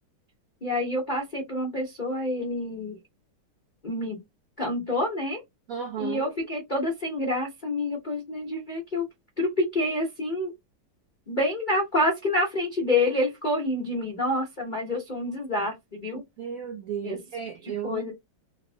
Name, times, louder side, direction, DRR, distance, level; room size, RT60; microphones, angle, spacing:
voice 1, 0.6-3.0 3.8-4.2 4.6-5.4 6.0-9.0 9.4-10.5 11.3-16.2 17.0-17.2 17.8-18.1, left 1 dB, 60° left, 0.5 m, -27 dB
voice 2, 5.7-6.2 16.4-18.1, right 8 dB, 70° right, 0.8 m, -34 dB
4.3 x 2.1 x 2.7 m
omnidirectional pair, 2.4 m